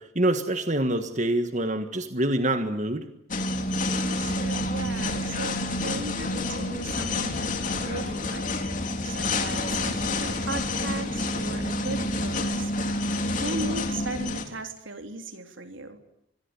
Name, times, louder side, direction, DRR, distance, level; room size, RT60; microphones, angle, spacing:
voice 1, 0.0-3.1, right 1 dB, 40° right, 8 dB, 1.7 m, -26 dB
sound 1, 3.3-14.4, left 2 dB, 40° left, 3.5 m, -28 dB
voice 2, 3.9-8.5 9.0-16.0, right 2 dB, 80° right, 6 dB, 3.6 m, -37 dB
26.0 x 22.5 x 10.0 m, 0.78 s
head